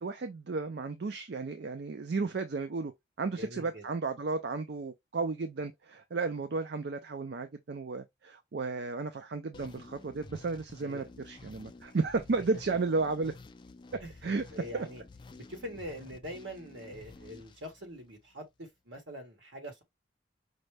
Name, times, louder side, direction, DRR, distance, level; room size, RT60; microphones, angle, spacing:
voice 1, 0.0-2.9 3.2-13.3 13.9-14.4 14.7-14.9, right 4 dB, 60° right, 0.4 m, -33 dB
voice 2, 3.4-3.8 10.8-11.1 14.0-14.1 14.5-15.0 15.5-19.8, equal, 75° right, 1.5 m, -44 dB
sound 1, 9.5-18.4, left 3 dB, 25° left, 0.3 m, -52 dB
5.2 x 2.2 x 3.3 m
head